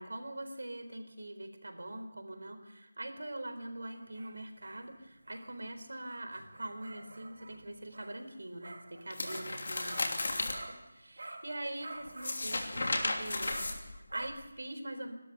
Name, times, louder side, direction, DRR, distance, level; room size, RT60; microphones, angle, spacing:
voice 1, 0.0-10.6 10.9-15.1, right 1 dB, 90° right, 6 dB, 4.1 m, -43 dB
sound 1, 3.9-10.9 11.2-14.3, right 2 dB, 65° right, 2.7 m, -50 dB
sound 2, 9.1-10.6 12.1-14.3, left 2 dB, 50° left, 2.9 m, -34 dB
29.5 x 13.0 x 6.9 m, 1.0 s
figure-of-eight pair, 175°, 0 cm